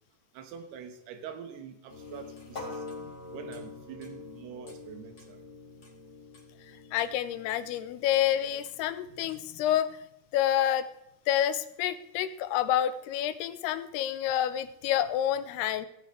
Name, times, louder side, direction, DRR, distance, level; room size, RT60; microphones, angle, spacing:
voice 1, 0.3-2.9 3.3-5.4, right 7 dB, 80° right, 8 dB, 3.3 m, -45 dB
sound 1, 1.9-9.4, left 3 dB, 30° left, 1.9 m, -45 dB
voice 2, 6.9-9.9 10.3-10.9 11.3-15.9, left 11 dB, 85° left, 12 dB, 2.7 m, -28 dB
17.0 x 9.7 x 3.2 m, 0.79 s
omnidirectional pair, 4.7 m